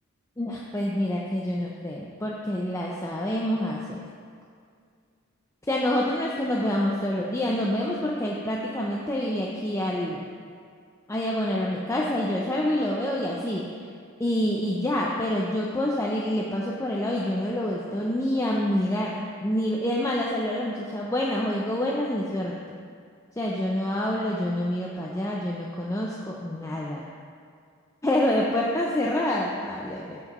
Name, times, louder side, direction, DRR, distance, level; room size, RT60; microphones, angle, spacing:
voice 1, 0.4-4.0 5.7-10.3 11.1-13.6 14.2-19.1 19.4-22.8 23.4-27.1 28.0-30.2, left 1 dB, 15° left, -3 dB, 0.4 m, -27 dB
14.0 x 5.8 x 3.0 m, 2.2 s
head